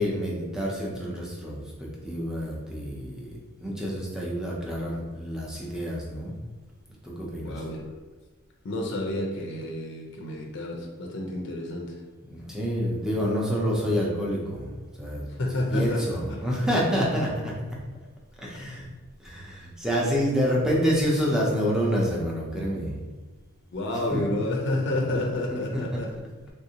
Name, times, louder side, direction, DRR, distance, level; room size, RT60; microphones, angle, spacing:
voice 1, 0.0-6.3 7.0-7.5 12.2-14.7 15.0-15.3 15.5-17.5 18.4-18.8 19.2-23.0 24.1-24.3 25.5-25.8, equal, 5° right, -4 dB, 0.5 m, -28 dB
voice 2, 7.4-7.9 8.6-11.9 15.4-16.5 23.7-26.2, left 1 dB, 55° left, 0 dB, 0.5 m, -30 dB
3.5 x 2.6 x 2.8 m, 1.3 s
head